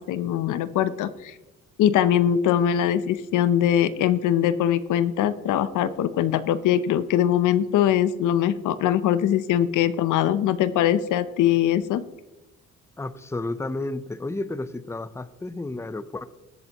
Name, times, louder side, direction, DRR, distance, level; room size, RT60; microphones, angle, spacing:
voice 1, 0.0-1.3 1.8-12.0, left 10 dB, 85° left, 14 dB, 0.8 m, -22 dB
voice 2, 13.0-16.2, left 2 dB, 10° left, 14 dB, 0.6 m, -32 dB
20.0 x 7.9 x 3.0 m, 1.0 s
cardioid pair, 90°, 30 cm